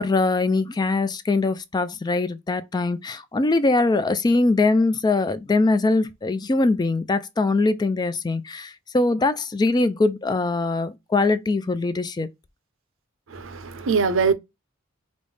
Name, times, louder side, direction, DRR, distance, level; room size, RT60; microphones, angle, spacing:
voice 1, 0.0-12.3, left 3 dB, 20° left, 0.3 m, -22 dB
voice 2, 13.3-14.3, right 5 dB, 70° right, 0.6 m, -22 dB
5.2 x 2.1 x 3.2 m
head